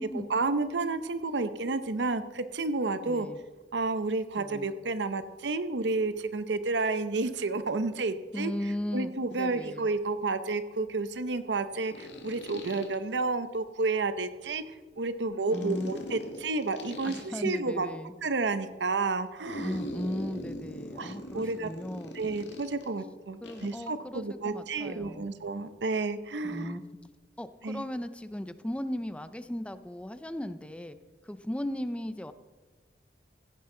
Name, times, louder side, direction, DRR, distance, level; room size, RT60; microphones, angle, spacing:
voice 1, 0.1-3.3 3.7-8.5 8.9-14.6 15.0-17.9 18.2-19.8 21.0-21.7 22.1-26.8 27.6-27.8, right 3 dB, 85° right, 12 dB, 0.7 m, -31 dB
voice 2, 3.1-3.4 4.4-4.7 8.3-9.1 9.4-9.9 15.5-15.9 17.0-18.1 19.6-22.2 23.4-25.3 26.4-26.8 27.4-31.0 31.2-32.3, left 1 dB, 5° left, 12 dB, 0.4 m, -36 dB
sound 1, 9.3-9.4 11.9-13.0 15.5-17.3 19.4-22.9 23.4-23.8, equal, 85° left, 1.7 m, -41 dB
16.0 x 9.8 x 3.8 m, 1.3 s
head